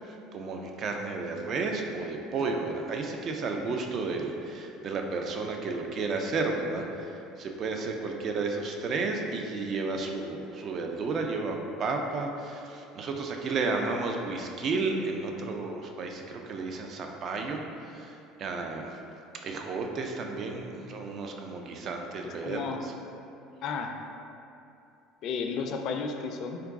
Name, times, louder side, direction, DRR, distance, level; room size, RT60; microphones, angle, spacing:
voice 1, 0.3-17.6 17.9-19.0 19.4-22.9, right 3 dB, 45° right, 2 dB, 0.4 m, -32 dB
voice 2, 22.2-22.8 23.6-24.0 25.2-26.6, left 5 dB, 55° left, 4 dB, 0.3 m, -33 dB
3.8 x 2.3 x 3.5 m, 2.7 s
supercardioid pair, 115°, 0 cm